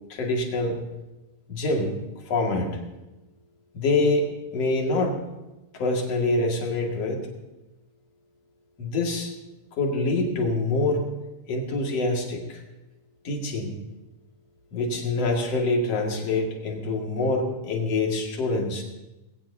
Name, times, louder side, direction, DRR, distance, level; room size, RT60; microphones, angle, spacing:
voice 1, 0.1-0.8 1.5-1.9 2.3-2.7 3.7-5.2 5.7-7.2 8.8-9.3 9.8-11.1 11.5-12.6 13.2-13.7 14.7-18.8, left 2 dB, 45° left, -1 dB, 2.5 m, -25 dB
20.5 x 17.0 x 2.8 m, 1.0 s
omnidirectional pair, 5.2 m